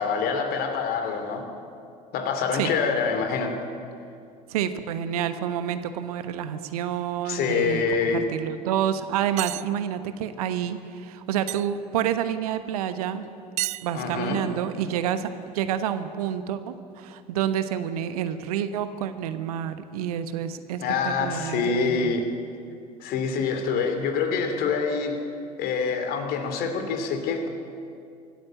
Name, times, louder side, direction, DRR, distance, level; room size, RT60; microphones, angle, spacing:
voice 1, 0.0-1.5 2.1-3.6 7.2-8.3 13.9-14.4 20.8-22.3 23.0-25.2 25.6-27.5, left 5 dB, 45° left, 6 dB, 2.7 m, -26 dB
voice 2, 4.5-7.8 8.1-13.3 13.8-22.2, right 9 dB, 60° right, 11 dB, 1.2 m, -28 dB
sound 1, 9.4-9.7 11.5-11.7 13.6-14.4, right 17 dB, 35° right, 0.4 m, -31 dB
24.0 x 14.5 x 7.8 m, 2.5 s
figure-of-eight pair, 70°, 21 cm